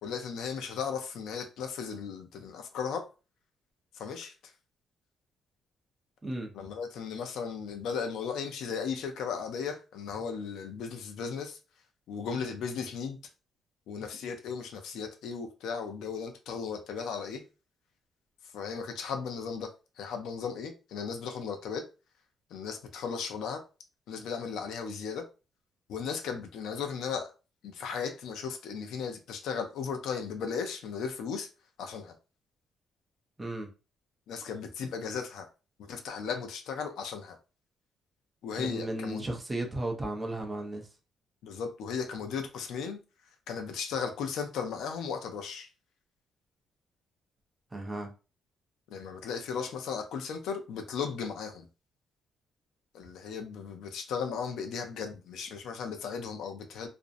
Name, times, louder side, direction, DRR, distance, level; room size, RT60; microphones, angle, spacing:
voice 1, 0.0-3.1 4.0-4.3 6.5-11.6 12.1-13.2 13.9-17.4 18.5-19.7 20.0-21.8 22.5-23.6 24.1-25.2 25.9-27.3 27.6-31.5 31.8-32.1 34.3-35.5 35.9-37.4 38.4-39.2 41.4-43.0 43.5-45.7 48.9-51.7 52.9-56.9, left 6 dB, 85° left, 0.4 m, -36 dB
voice 2, 38.6-40.9 47.7-48.1, right 1 dB, 15° right, 0.5 m, -34 dB
2.5 x 2.0 x 2.5 m
cardioid pair, 160°, 0 cm